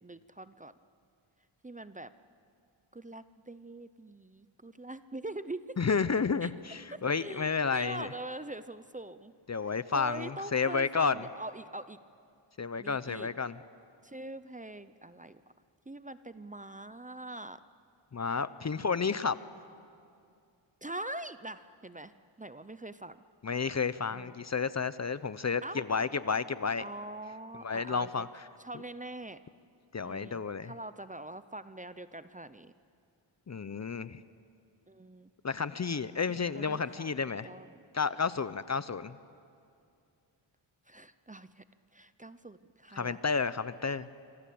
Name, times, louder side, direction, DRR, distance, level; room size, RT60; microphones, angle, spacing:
voice 1, 0.0-0.7 1.6-2.1 2.9-5.8 6.4-6.5 6.9-9.3 9.6-12.0 12.8-13.3 14.0-15.4 15.9-17.6 20.8-22.1 22.4-23.2 24.1-24.3 25.6-25.8 26.8-28.3 28.6-29.4 30.0-32.7 34.9-35.3 36.3-37.1 37.4-37.8 40.9-41.6 41.9-43.2, right 2 dB, 15° right, 13 dB, 0.7 m, -43 dB
voice 2, 5.8-8.1 9.5-11.2 12.6-13.6 18.1-19.4 23.4-26.8 27.6-28.4 29.9-30.7 33.5-34.2 35.4-37.5 37.9-39.2 43.0-44.1, left 5 dB, 35° left, 15 dB, 0.7 m, -31 dB
26.0 x 25.0 x 8.6 m, 2.4 s
wide cardioid pair, 100°, 47 cm